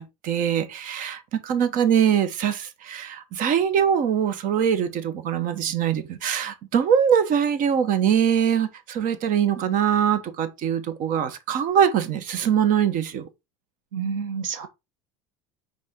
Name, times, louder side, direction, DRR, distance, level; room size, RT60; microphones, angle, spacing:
voice 1, 0.0-13.3, right 8 dB, 55° right, 1.2 m, -23 dB
voice 2, 13.9-14.7, right 6 dB, 85° right, 1.5 m, -29 dB
5.5 x 4.3 x 4.5 m
supercardioid pair, 95°, 17 cm